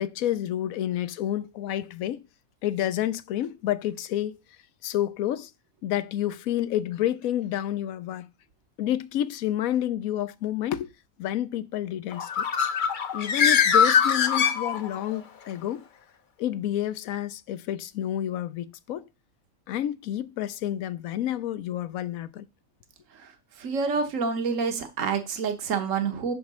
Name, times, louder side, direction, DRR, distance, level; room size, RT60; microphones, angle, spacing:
voice 1, 0.0-2.2 2.6-4.3 4.8-5.5 5.8-8.3 8.8-10.9 11.2-12.5 13.1-15.8 16.4-19.0 19.7-22.5, left 12 dB, 80° left, 1.0 m, -29 dB
Bird, 12.1-15.2, left 7 dB, 50° left, 0.6 m, -22 dB
voice 2, 23.6-26.3, right 5 dB, 65° right, 1.5 m, -27 dB
9.3 x 3.2 x 6.1 m
omnidirectional pair, 1.5 m